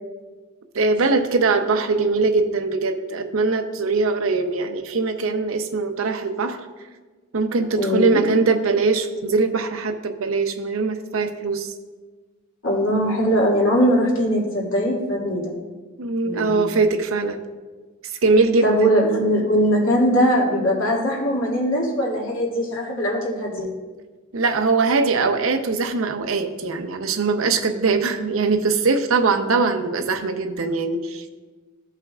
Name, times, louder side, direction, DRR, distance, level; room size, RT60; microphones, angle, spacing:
voice 1, 0.7-6.6 7.3-11.7 16.0-17.4 18.0-18.9 24.3-31.3, right 4 dB, 75° right, 7 dB, 0.7 m, -21 dB
voice 2, 7.8-8.2 12.6-15.5 16.2-16.7 18.6-23.7, equal, 75° left, -3 dB, 2.2 m, -21 dB
15.0 x 5.6 x 2.4 m, 1.3 s
head